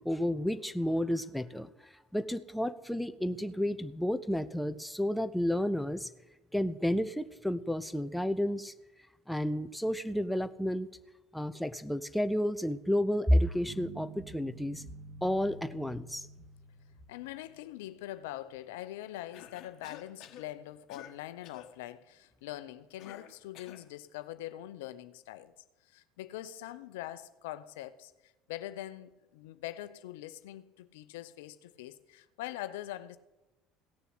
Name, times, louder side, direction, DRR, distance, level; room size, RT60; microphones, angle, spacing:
voice 1, 0.0-6.1 6.5-8.7 9.3-10.9 11.3-14.8 15.2-16.3, equal, 5° left, 0.8 m, -31 dB
sound 1, 13.6-17.9, right 3 dB, 15° right, 3.3 m, -49 dB
voice 2, 17.1-25.5 25.8-28.1 28.5-33.2, left 14 dB, 80° left, 0.7 m, -43 dB
Cough, 19.3-20.5 20.9-21.2 21.4-21.7 23.0-23.9, left 11 dB, 60° left, 1.5 m, -50 dB
16.5 x 7.0 x 7.8 m
hypercardioid pair, 80°, 0 cm